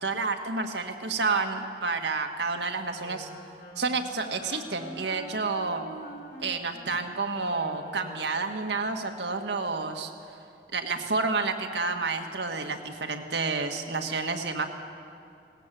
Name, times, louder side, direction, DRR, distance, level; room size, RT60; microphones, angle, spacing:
voice 1, 0.0-3.3 3.8-5.8 6.4-10.1 10.7-14.7, right 4 dB, 80° right, 4 dB, 1.7 m, -30 dB
Wind instrument woodwind instrument, 3.0-8.7, equal, 50° left, 4.9 m, -46 dB
19.0 x 18.5 x 7.6 m, 2.5 s
head